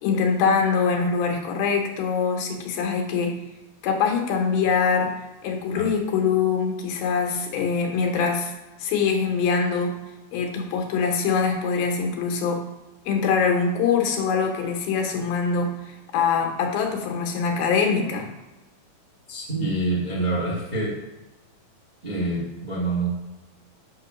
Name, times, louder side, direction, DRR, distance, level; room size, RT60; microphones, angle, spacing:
voice 1, 0.0-3.4 3.8-5.1 5.4-8.5 8.8-9.9 10.3-12.6 13.1-18.3, left 5 dB, 85° left, 2 dB, 2.9 m, -23 dB
voice 2, 19.3-20.9 22.0-23.1, right 2 dB, 70° right, -6 dB, 0.4 m, -26 dB
8.2 x 3.0 x 6.0 m, 1.0 s
omnidirectional pair, 4.1 m